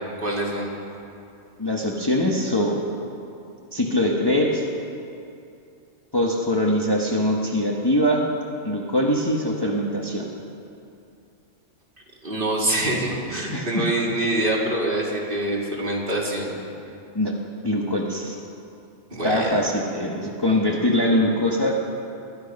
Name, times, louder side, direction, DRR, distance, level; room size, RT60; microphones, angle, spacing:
voice 1, 0.2-0.7 12.2-16.5 19.1-19.6, right 1 dB, 45° right, -4 dB, 2.8 m, -25 dB
voice 2, 1.6-2.9 3.7-4.6 6.1-8.2 8.6-10.3 13.5-13.9 17.1-17.3 17.6-18.4 19.2-21.8, left 1 dB, 20° left, -2 dB, 1.2 m, -22 dB
20.5 x 11.0 x 5.4 m, 2.6 s
omnidirectional pair, 1.3 m